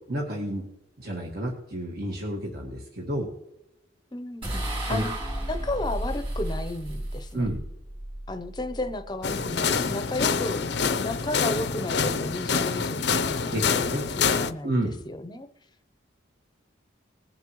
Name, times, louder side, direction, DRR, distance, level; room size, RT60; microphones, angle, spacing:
voice 1, 0.1-0.6 1.0-3.3 4.8-5.1 7.3-7.6 13.5-14.0 14.6-15.0, right 1 dB, 55° right, -1 dB, 1.7 m, -30 dB
voice 2, 4.1-4.6 4.9-5.2 5.5-7.5 8.3-10.6 10.9-13.0 13.3-15.5, left 2 dB, 20° left, 9 dB, 0.7 m, -33 dB
sound 1, 4.4-9.8, right 1 dB, 25° right, 3.0 m, -34 dB
sound 2, 9.2-14.5, left 5 dB, 60° left, 0.6 m, -26 dB
20.0 x 7.3 x 3.1 m, 0.86 s
head